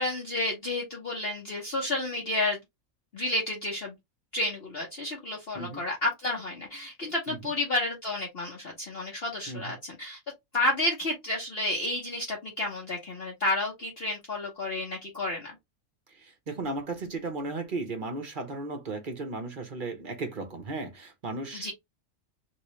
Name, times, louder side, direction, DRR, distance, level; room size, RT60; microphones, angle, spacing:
voice 1, 0.0-2.6 3.1-3.9 4.3-10.2 10.5-15.6 21.5-21.7, left 2 dB, 45° left, 1.2 m, -31 dB
voice 2, 16.5-21.7, right 3 dB, 40° right, 0.9 m, -35 dB
3.0 x 3.0 x 3.0 m
omnidirectional pair, 1.5 m